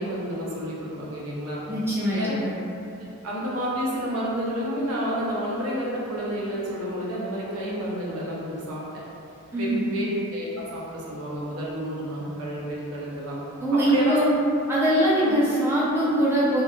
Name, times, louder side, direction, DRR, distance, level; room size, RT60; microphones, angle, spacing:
voice 1, 0.0-1.6 2.1-2.4 3.2-8.8 9.5-13.4 13.7-14.2 15.2-15.3, equal, 85° right, -6 dB, 0.6 m, -30 dB
voice 2, 1.7-2.5 9.5-10.0 13.6-14.3 14.7-16.6, right 1 dB, 10° right, -8 dB, 0.4 m, -22 dB
2.8 x 2.5 x 2.3 m, 2.6 s
head